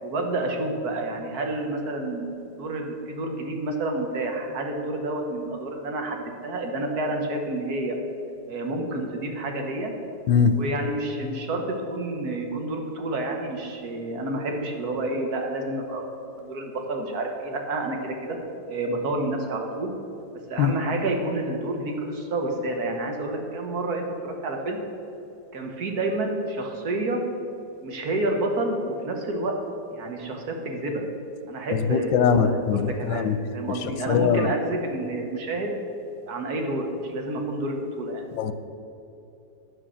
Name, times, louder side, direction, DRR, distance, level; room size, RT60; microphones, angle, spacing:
voice 1, 0.0-8.0 8.5-9.9 10.5-11.6 11.9-16.0 16.4-18.4 18.7-19.9 20.5-24.8 25.5-27.2 27.8-29.5 29.9-31.0 31.5-35.7 36.3-38.2, right 2 dB, 60° right, 2 dB, 1.6 m, -29 dB
voice 2, 10.3-10.6 20.6-20.7 31.7-33.4 33.8-34.5 38.3-38.5, left 7 dB, 85° left, 11 dB, 1.3 m, -22 dB
9.5 x 6.3 x 6.2 m, 2.8 s
omnidirectional pair, 2.0 m